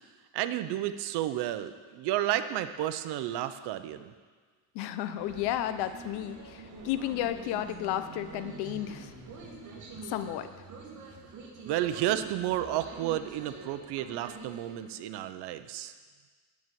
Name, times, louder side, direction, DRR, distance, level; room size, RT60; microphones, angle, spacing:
voice 1, 0.3-4.1 11.6-15.9, right 13 dB, 85° right, 11 dB, 0.9 m, -31 dB
voice 2, 4.7-9.1 10.1-10.5, left 12 dB, 90° left, 11 dB, 0.9 m, -33 dB
sound 1, 5.2-14.8, right 3 dB, 50° right, 2.6 m, -46 dB
9.4 x 8.6 x 9.1 m, 1.5 s
cardioid pair, 130°, 39 cm